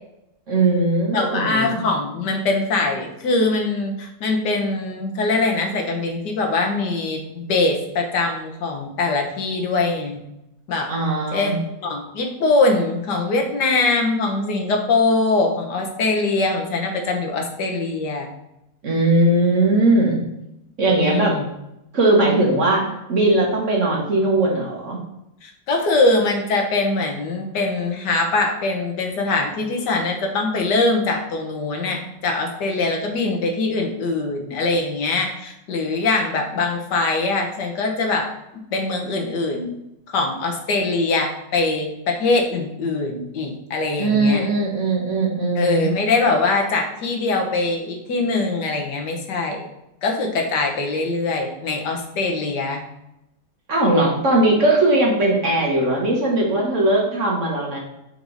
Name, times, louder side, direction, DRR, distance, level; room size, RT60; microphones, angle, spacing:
voice 1, 0.5-1.8 10.9-11.5 18.8-20.2 20.8-21.4 21.9-25.0 44.0-45.9 53.7-57.8, right 2 dB, 45° right, -2 dB, 1.4 m, -19 dB
voice 2, 1.1-10.2 10.7-10.9 11.3-18.3 20.9-21.4 25.4-38.3 38.7-39.7 40.1-44.5 45.6-49.6 50.0-52.8, left 3 dB, 70° left, 2 dB, 1.5 m, -22 dB
5.2 x 4.8 x 3.9 m, 0.87 s
omnidirectional pair, 1.9 m